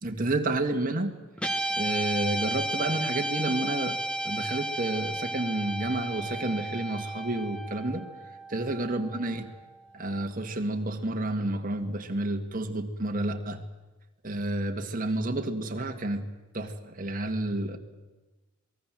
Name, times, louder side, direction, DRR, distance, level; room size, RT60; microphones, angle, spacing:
voice 1, 0.0-1.1 1.8-4.0 4.2-8.1 8.5-9.5 9.9-13.6 14.2-16.2 16.5-17.8, right 2 dB, 40° right, 5 dB, 2.1 m, -30 dB
Guitar, 1.4-9.9, right 1 dB, 5° left, 1.9 m, -33 dB
27.0 x 20.0 x 7.8 m, 1.2 s
head